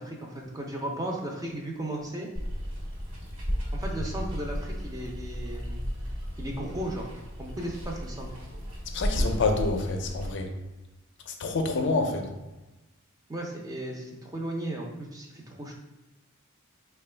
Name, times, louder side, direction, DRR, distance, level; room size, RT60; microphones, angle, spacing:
voice 1, 0.0-2.3 3.7-5.8 6.4-7.1 7.4-8.3 13.3-15.7, right 1 dB, 15° right, 0 dB, 0.5 m, -35 dB
Water, 2.3-10.3, equal, 70° right, 1.2 m, -34 dB
voice 2, 8.9-10.5 11.3-12.3, left 3 dB, 55° left, 5 dB, 0.5 m, -27 dB
4.3 x 2.3 x 3.3 m, 1.1 s
head